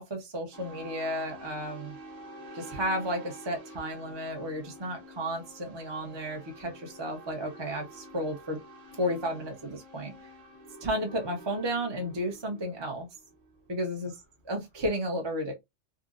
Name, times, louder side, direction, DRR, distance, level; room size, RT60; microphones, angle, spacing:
voice 1, 0.0-2.0 2.5-8.6 8.9-10.1 10.8-13.1 13.7-14.1 14.4-15.5, equal, 30° right, 0.6 m, -33 dB
sound 1, 0.5-14.8, right 1 dB, 85° right, 1.3 m, -48 dB
3.6 x 2.0 x 2.4 m
omnidirectional pair, 1.3 m